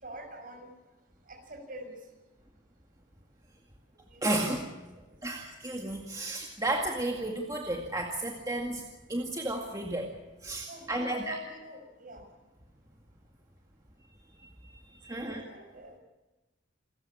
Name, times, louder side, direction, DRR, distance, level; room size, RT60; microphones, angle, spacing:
voice 1, 0.0-0.7 1.3-2.0 4.1-4.2 10.7-12.2 15.1-16.0, right 1 dB, 45° right, 4 dB, 6.1 m, -45 dB
voice 2, 4.2-4.6 5.2-8.8 9.1-11.4 14.4-15.4, right 1 dB, 20° right, 1 dB, 2.0 m, -33 dB
28.0 x 14.5 x 8.5 m, 1.1 s
head